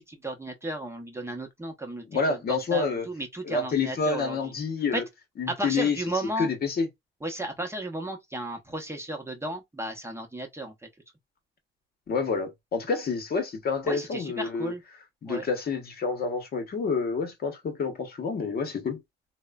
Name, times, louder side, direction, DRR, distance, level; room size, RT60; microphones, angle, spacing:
voice 1, 0.0-2.4 2.7-4.5 4.9-5.0 5.5-6.5 7.2-10.7 13.8-14.8 15.3-15.5, right 1 dB, 15° right, 0.7 m, -34 dB
voice 2, 2.1-3.1 3.4-5.0 5.4-6.0 6.4-6.9 12.1-14.7 15.2-19.0, left 4 dB, 50° left, 0.9 m, -28 dB
3.0 x 2.1 x 2.2 m
cardioid pair, 90°, 20 cm